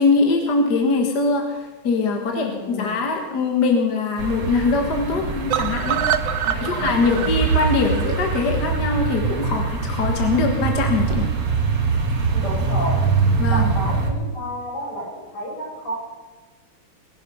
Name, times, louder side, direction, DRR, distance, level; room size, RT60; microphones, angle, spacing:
voice 1, 0.0-6.0 6.5-11.3 13.4-13.7, left 3 dB, 50° left, 3 dB, 2.0 m, -22 dB
voice 2, 2.2-3.0 6.4-7.4 12.3-13.0 13.5-15.9, equal, 85° left, -6 dB, 8.3 m, -31 dB
sound 1, 4.2-14.1, right 5 dB, 85° right, 2.9 m, -23 dB
sound 2, 5.5-9.5 9.9-10.0 10.2-10.3 10.6-10.7, right 9 dB, 70° right, 1.5 m, -27 dB
20.0 x 12.0 x 5.6 m, 1.3 s
omnidirectional pair, 2.4 m